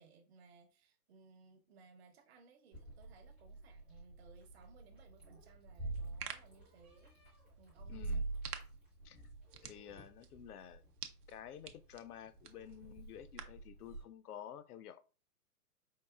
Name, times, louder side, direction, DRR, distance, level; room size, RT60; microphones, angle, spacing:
voice 1, 0.0-8.3, right 4 dB, 40° right, 0.8 m, -63 dB
Meow, 2.7-14.0, right 3 dB, 10° right, 0.3 m, -47 dB
sound 1, 5.9-13.7, right 9 dB, 75° right, 0.7 m, -52 dB
voice 2, 7.9-8.2 9.0-9.2 9.6-10.8 11.3-15.0, left 9 dB, 70° left, 0.6 m, -51 dB
4.7 x 2.5 x 2.3 m
hypercardioid pair, 125°, 48 cm